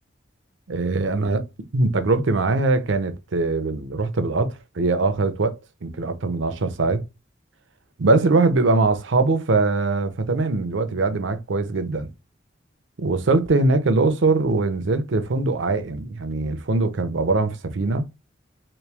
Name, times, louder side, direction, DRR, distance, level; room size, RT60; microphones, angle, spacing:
voice 1, 0.7-1.5 1.7-7.0 8.0-12.1 13.0-18.1, right 3 dB, 75° right, 0.6 m, -22 dB
3.2 x 3.0 x 3.3 m
head